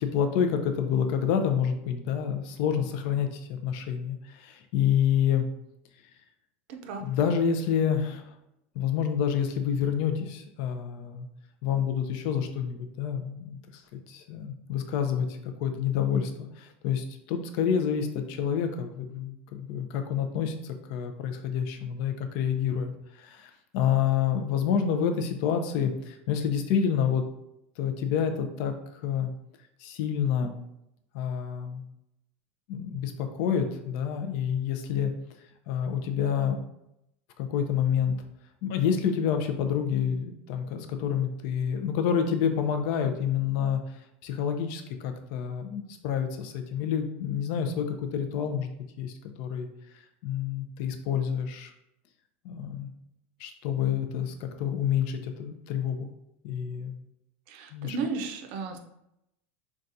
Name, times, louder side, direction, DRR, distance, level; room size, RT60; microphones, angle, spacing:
voice 1, 0.0-5.4 7.0-8.3 8.7-11.3 11.6-22.9 23.2-27.2 27.8-29.3 29.8-30.5 31.1-31.8 32.7-35.1 35.7-36.6 37.4-38.1 38.6-43.8 44.2-48.7 49.0-49.7 50.2-51.7 52.4-52.9 53.4-56.1 56.4-56.9 57.7-58.0, left 8 dB, 60° left, 7 dB, 0.5 m, -28 dB
voice 2, 57.5-58.8, right 4 dB, 60° right, 5 dB, 0.5 m, -34 dB
4.0 x 2.3 x 2.6 m, 0.82 s
supercardioid pair, 150°, 7 cm